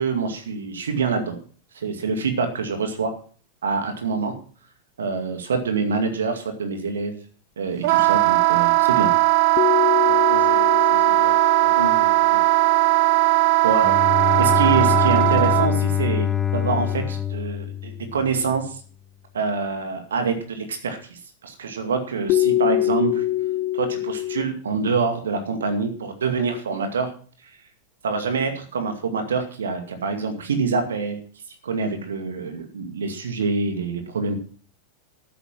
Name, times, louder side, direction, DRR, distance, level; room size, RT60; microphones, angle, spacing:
voice 1, 0.0-1.4 1.7-3.1 3.6-4.3 5.0-7.2 7.6-9.1 13.6-14.1 14.4-18.8 19.3-23.2 23.7-27.1 28.0-31.2 31.6-34.4, right 4 dB, 65° right, 6 dB, 2.3 m, -26 dB
Wind instrument woodwind instrument, 7.8-15.7, right 20 dB, 50° right, 0.6 m, -18 dB
sound 1, 9.6-13.7 22.3-24.4, left 14 dB, 40° left, 1.3 m, -25 dB
voice 2, 10.0-12.4, equal, 85° right, 5 dB, 2.2 m, -35 dB
Bowed string instrument, 13.8-18.5, left 9 dB, 15° left, 1.0 m, -24 dB
12.0 x 9.7 x 5.9 m, 0.43 s
figure-of-eight pair, 90°, 0 cm